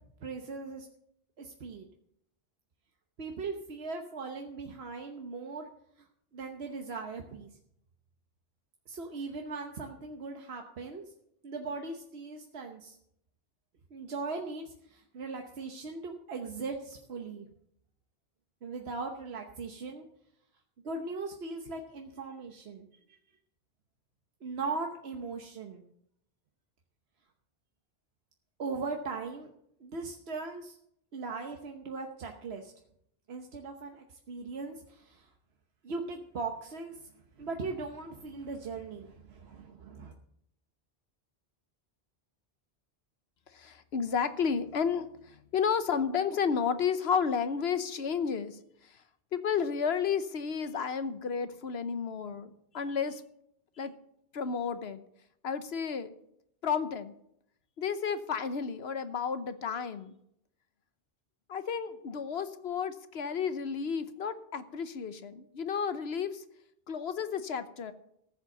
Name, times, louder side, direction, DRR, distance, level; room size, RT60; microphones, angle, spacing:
voice 1, 0.2-0.9 1.4-1.9 3.2-5.7 6.0-6.1 6.3-7.6 8.9-11.0 11.4-13.0 13.9-17.5 18.6-20.1 20.8-23.2 24.4-25.8 28.6-29.5 29.8-30.8 31.1-32.7 33.3-35.3 35.8-37.1 37.4-40.1, right 4 dB, 85° right, 3 dB, 1.3 m, -39 dB
voice 2, 43.5-49.0 49.3-53.2 53.8-53.9 54.3-55.0 55.4-56.1 56.6-57.1 57.8-60.1 61.5-66.4 66.9-67.9, left 6 dB, 85° left, 11 dB, 1.2 m, -32 dB
14.5 x 7.6 x 6.5 m, 0.74 s
omnidirectional pair, 1.0 m